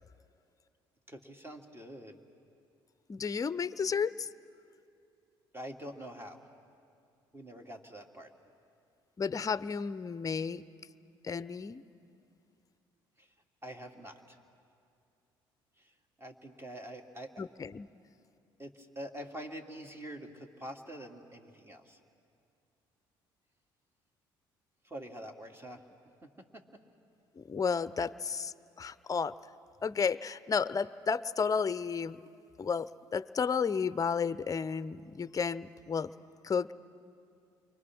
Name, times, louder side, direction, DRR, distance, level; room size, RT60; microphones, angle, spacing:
voice 1, 1.1-2.2 5.5-6.5 7.3-8.3 13.2-13.3 13.6-14.4 15.8-15.9 16.2-17.5 18.6-22.0 24.8-25.8 26.2-26.6, right 1 dB, 20° right, 3 dB, 2.7 m, -45 dB
voice 2, 3.1-4.3 9.2-10.6 11.2-11.8 17.4-17.9 27.4-29.4 29.8-32.2 32.6-36.1 36.4-36.7, left 6 dB, 30° left, 16 dB, 0.7 m, -32 dB
30.0 x 24.0 x 6.2 m, 2.5 s
hypercardioid pair, 60°, 12 cm